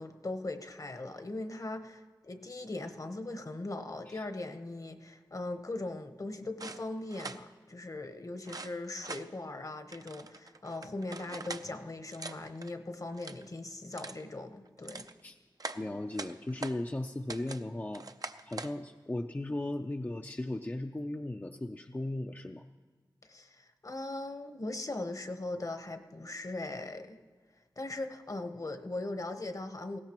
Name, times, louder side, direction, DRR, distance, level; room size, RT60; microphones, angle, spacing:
voice 1, 0.0-15.1 23.2-27.2 27.8-30.0, left 2 dB, 45° left, 8 dB, 1.0 m, -39 dB
sound 1, 6.6-7.4 8.4-9.3 9.9-11.7 12.1-12.7 13.1-13.4 13.9-14.2 14.7-15.1 15.6-16.8 17.3-17.6 17.9-18.7, right 3 dB, 50° right, 0.5 m, -43 dB
voice 2, 15.7-18.0 18.4-22.6, left 1 dB, 25° left, 4 dB, 0.5 m, -37 dB
19.5 x 16.5 x 3.0 m, 1.4 s
wide cardioid pair, 55°, 8 cm